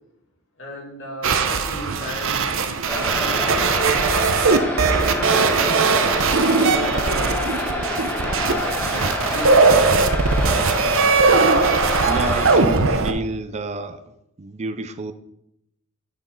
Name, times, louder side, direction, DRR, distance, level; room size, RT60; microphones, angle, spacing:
voice 1, 0.6-5.8 6.4-7.9 8.4-9.8, left 1 dB, 60° left, -2 dB, 2.5 m, -36 dB
sound 1, 1.2-13.1, right 4 dB, 65° right, 0.8 m, -19 dB
sound 2, 2.9-12.5, left 1 dB, 5° left, 1.4 m, -27 dB
voice 2, 12.0-14.0 14.4-15.1, right 3 dB, 30° right, 10 dB, 0.4 m, -29 dB
10.5 x 6.0 x 4.0 m, 0.81 s
head